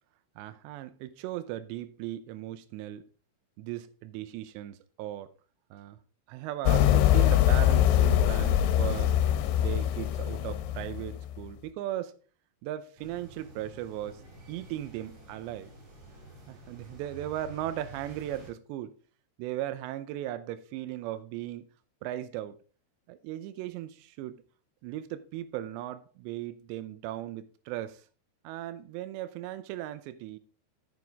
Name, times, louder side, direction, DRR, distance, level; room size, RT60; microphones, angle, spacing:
voice 1, 0.4-3.0 3.6-5.3 5.7-6.0 6.3-9.2 9.6-12.1 12.6-14.2 14.5-15.7 16.5-18.9 19.4-21.7 22.0-22.6 23.1-24.4 24.8-28.0 28.4-30.4, right 13 dB, 80° right, 2.7 m, -37 dB
sound 1, 6.7-11.4, left 12 dB, 80° left, 3.0 m, -23 dB
sound 2, 13.0-18.5, right 2 dB, 40° right, 4.6 m, -50 dB
9.5 x 7.8 x 3.5 m
omnidirectional pair, 5.6 m